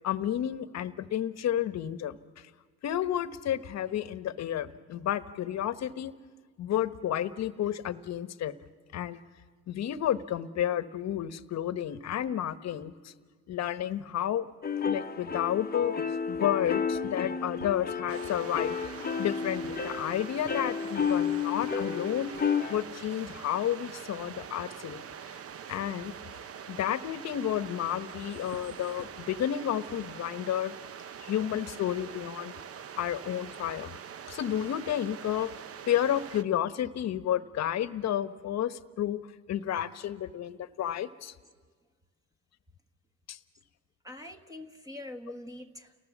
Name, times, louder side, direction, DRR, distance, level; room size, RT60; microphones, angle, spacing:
voice 1, 0.0-2.4 2.8-6.1 6.6-8.5 8.9-9.2 9.7-13.1 13.5-14.5 14.8-18.8 19.2-22.3 22.7-25.4 25.7-26.1 26.7-30.7 31.2-32.6 33.0-34.0 34.3-35.5 35.9-39.2 39.5-41.3 43.3-43.4, left 11 dB, 60° left, 12 dB, 1.1 m, -31 dB
sound 1, 14.6-22.8, left 6 dB, 30° left, 1.0 m, -31 dB
sound 2, 16.8-21.8 22.1-23.4 23.7-24.0 24.5-24.6 24.9-26.2 26.6-27.0 27.7-30.0, right 3 dB, 75° right, 5.5 m, -55 dB
sound 3, 18.1-36.4, right 8 dB, 50° right, 0.9 m, -44 dB
voice 2, 44.0-46.0, left 1 dB, 10° right, 6 dB, 1.4 m, -44 dB
30.0 x 18.5 x 7.3 m, 1.5 s
cardioid pair, 100°, 31 cm